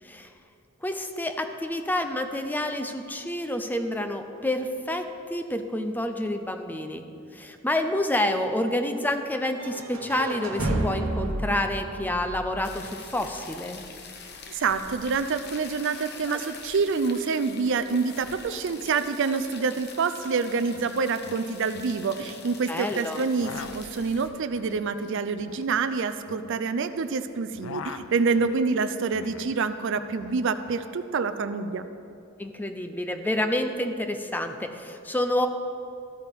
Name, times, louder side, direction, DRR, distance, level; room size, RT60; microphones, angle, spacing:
voice 1, 0.8-7.0 7.3-13.8 16.3-16.4 22.7-23.2 32.4-35.5, left 1 dB, 10° left, 7 dB, 0.5 m, -28 dB
sound 1, 9.6-13.5, right 1 dB, 75° right, 1.1 m, -31 dB
sound 2, 12.6-24.3, left 5 dB, 50° left, 0.9 m, -45 dB
voice 2, 14.5-31.8, right 4 dB, 60° right, 11 dB, 0.4 m, -27 dB
sound 3, 20.3-20.4 20.6-20.9 21.2-22.4 23.1-27.1 27.4-29.6 29.9-30.8, left 6 dB, 70° left, 0.4 m, -43 dB
13.5 x 8.9 x 3.5 m, 2.7 s
head